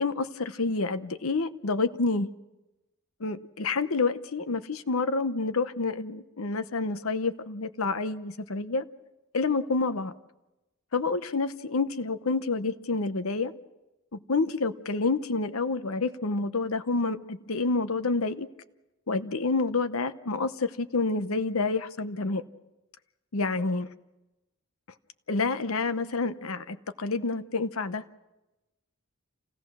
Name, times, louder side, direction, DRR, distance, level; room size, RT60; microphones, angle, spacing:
voice 1, 0.0-2.3 3.2-8.8 9.3-10.1 10.9-13.5 14.1-18.5 19.1-22.4 23.3-23.9 25.3-28.0, left 3 dB, 70° left, 12 dB, 0.8 m, -28 dB
28.0 x 17.0 x 6.1 m, 1.0 s
head